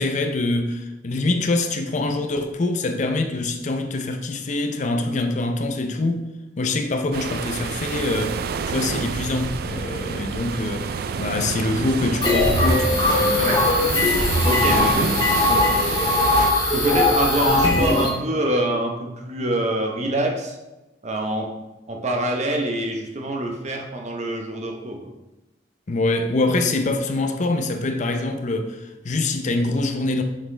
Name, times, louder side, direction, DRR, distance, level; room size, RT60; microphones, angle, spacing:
voice 1, 0.0-6.2 6.6-8.4 8.7-13.5 14.6-15.2 25.9-30.2, left 2 dB, 40° left, 0.5 m, -24 dB
sound 1, 7.1-16.5, right 5 dB, 55° right, 0.3 m, -29 dB
sound 2, 12.2-18.1, left 2 dB, 25° left, 1.5 m, -20 dB
voice 2, 14.4-15.0 15.5-15.7 16.7-20.6 21.0-21.5 21.9-25.1, right 1 dB, 40° right, 0.9 m, -25 dB
7.3 x 4.5 x 3.3 m
head